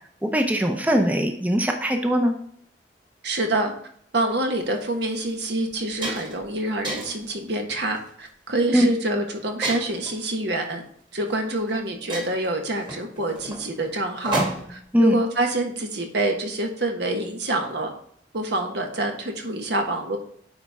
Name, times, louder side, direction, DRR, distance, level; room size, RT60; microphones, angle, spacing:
voice 1, 0.2-2.3 8.7-8.9 14.9-15.1, equal, 10° right, 4 dB, 0.7 m, -20 dB
voice 2, 3.2-3.7 4.1-10.8 11.1-17.9 18.3-20.2, right 2 dB, 65° right, 3 dB, 1.4 m, -26 dB
sound 1, 4.6-4.7 5.3-5.4 5.7-6.5 6.8-7.3 8.0-8.3 9.6-10.2 11.3-11.4 11.7-11.8 12.1-14.9, right 1 dB, 25° right, 1.9 m, -31 dB
9.5 x 4.3 x 3.5 m, 0.63 s
head